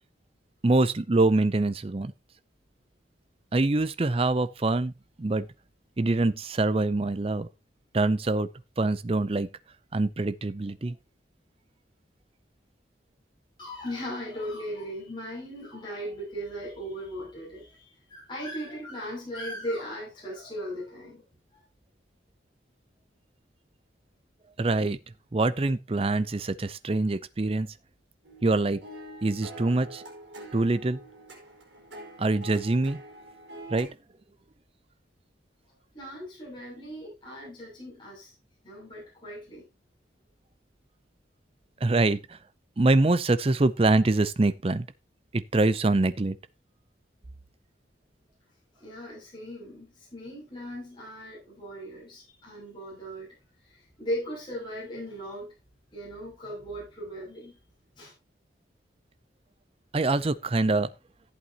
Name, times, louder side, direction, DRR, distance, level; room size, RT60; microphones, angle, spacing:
voice 1, 0.6-2.1 3.5-4.9 5.2-5.5 6.0-7.5 7.9-8.5 8.8-9.5 9.9-10.9 24.6-25.0 25.3-27.7 28.4-28.8 29.2-30.0 30.5-31.0 32.2-33.0 33.7-33.9 41.8-42.4 42.8-44.9 45.3-46.4 59.9-60.9, right 2 dB, 30° right, 0.5 m, -24 dB
voice 2, 13.6-17.8 18.1-21.2 21.5-21.6 35.9-38.3 38.6-39.6 48.8-53.3 54.0-55.5 55.9-57.6 57.9-58.1, equal, 25° left, 6.7 m, -38 dB
sound 1, 28.2-33.9, right 1 dB, 75° right, 4.2 m, -45 dB
14.5 x 8.3 x 2.9 m
head